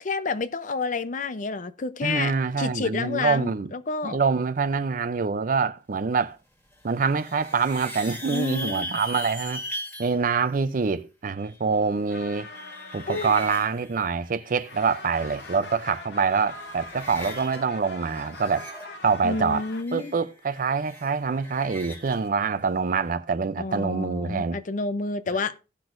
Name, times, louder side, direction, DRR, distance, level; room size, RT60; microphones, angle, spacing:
voice 1, 0.0-2.3 2.6-4.2 8.3-8.9 13.1-13.3 19.2-20.1 23.6-25.5, left 4 dB, 45° left, 0.6 m, -29 dB
voice 2, 2.0-3.7 4.0-6.4 6.8-9.6 10.0-12.5 12.9-18.7 19.0-19.6 19.9-24.6, right 5 dB, 50° right, 0.5 m, -25 dB
sound 1, 6.7-10.1 11.5-14.9 15.1-16.0 16.3-17.6 17.9-22.3, equal, 10° left, 1.8 m, -40 dB
sound 2, 12.1-14.2 14.5-19.8, left 3 dB, 65° left, 0.9 m, -42 dB
17.0 x 6.1 x 2.5 m
head